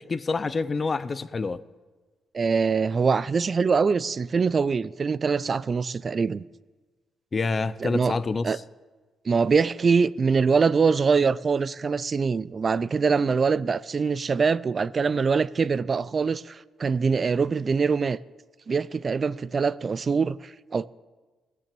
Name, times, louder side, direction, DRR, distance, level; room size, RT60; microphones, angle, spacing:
voice 1, 0.0-1.6 7.3-8.6, left 4 dB, 35° left, 0.5 m, -27 dB
voice 2, 2.3-6.4 7.8-8.2 8.4-8.6 9.3-18.2 18.7-20.9, right 5 dB, 40° right, 0.3 m, -23 dB
16.5 x 6.0 x 6.8 m
cardioid pair, 90°, 0 cm